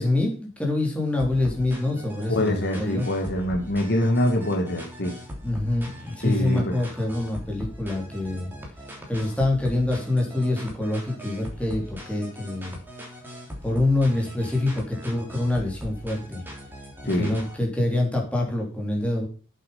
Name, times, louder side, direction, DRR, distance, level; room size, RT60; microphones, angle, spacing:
voice 1, 0.0-3.1 5.4-8.5 9.1-12.8 13.6-16.4 17.2-19.3, left 2 dB, 5° left, 0 dB, 3.7 m, -25 dB
sound 1, 1.2-17.6, equal, 10° right, 3.3 m, -40 dB
voice 2, 2.3-5.1 6.2-6.8 17.1-17.4, left 1 dB, 50° left, 3 dB, 1.9 m, -24 dB
8.5 x 7.7 x 5.6 m, 0.37 s
head